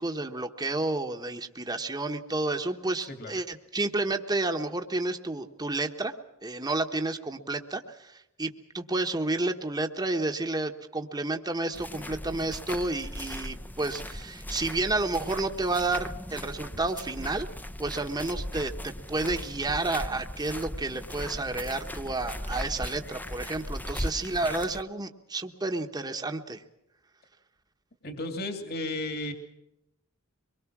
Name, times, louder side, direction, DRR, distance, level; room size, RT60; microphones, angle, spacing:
voice 1, 0.0-6.1 6.4-17.5 17.8-26.6, right 2 dB, 20° right, 5 dB, 1.2 m, -31 dB
sound 1, 11.7-24.8, left 1 dB, 10° left, 0.7 m, -38 dB
voice 2, 28.0-29.3, left 2 dB, 50° left, 7 dB, 2.6 m, -34 dB
24.0 x 22.5 x 6.1 m, 0.85 s
head